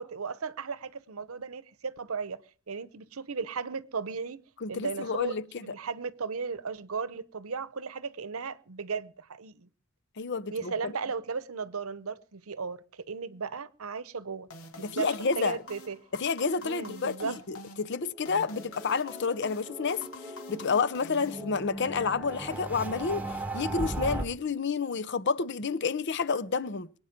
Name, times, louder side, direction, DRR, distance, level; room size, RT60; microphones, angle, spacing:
voice 1, 0.0-2.4 2.7-4.4 4.7-9.7 10.5-14.5 14.9-16.0 16.6-17.4, right 5 dB, 75° right, 0.8 m, -36 dB
voice 2, 4.6-5.7 10.2-10.9 14.8-15.6 16.1-20.0 20.5-23.2 23.5-26.9, left 5 dB, 55° left, 0.6 m, -30 dB
sound 1, 14.5-21.9, left 3 dB, 80° left, 2.6 m, -47 dB
sound 2, 18.1-24.2, right 1 dB, 10° right, 1.1 m, -38 dB
23.0 x 8.8 x 5.1 m
head